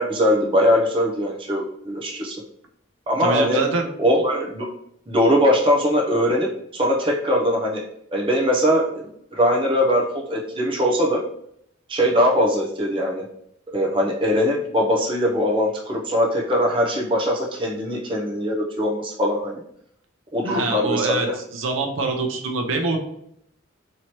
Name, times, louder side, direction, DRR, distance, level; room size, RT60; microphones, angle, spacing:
voice 1, 0.0-2.4 3.1-3.6 4.0-4.7 5.1-7.8 8.1-11.2 11.9-13.2 13.7-19.6 20.3-21.4, equal, 25° right, -1 dB, 0.6 m, -21 dB
voice 2, 3.2-3.9 20.4-21.3 21.5-23.0, right 3 dB, 80° right, 3 dB, 0.6 m, -24 dB
3.0 x 2.8 x 4.4 m, 0.71 s
head